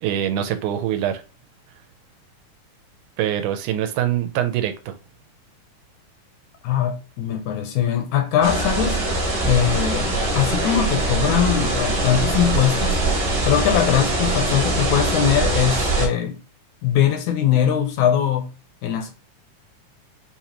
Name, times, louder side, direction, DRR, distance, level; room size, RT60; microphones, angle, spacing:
voice 1, 0.0-1.2 3.2-5.0, right 11 dB, 80° right, 2.0 m, -24 dB
voice 2, 6.6-9.0 9.4-13.0 13.5-16.4 16.8-18.5 18.8-19.1, left 9 dB, 75° left, 1.9 m, -21 dB
sound 1, 8.4-16.1, right 2 dB, 35° right, 0.9 m, -22 dB
6.4 x 2.8 x 2.9 m
omnidirectional pair, 3.7 m